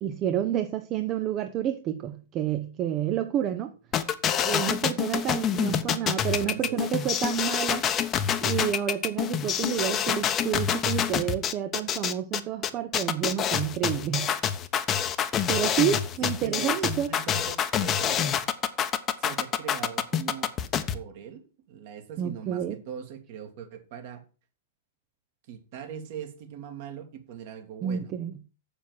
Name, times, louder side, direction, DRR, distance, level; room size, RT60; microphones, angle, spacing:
voice 1, 0.0-3.7 4.4-7.9 8.4-14.3 15.5-17.1 22.2-22.8 27.8-28.3, right 10 dB, 35° right, 0.9 m, -29 dB
sound 1, 3.9-20.9, left 9 dB, 30° left, 1.0 m, -27 dB
voice 2, 6.3-6.8 16.2-18.4 19.2-20.5 20.9-24.2 25.5-28.1, right 8 dB, 55° right, 2.4 m, -40 dB
7.4 x 7.0 x 7.3 m
hypercardioid pair, 105°, 0 cm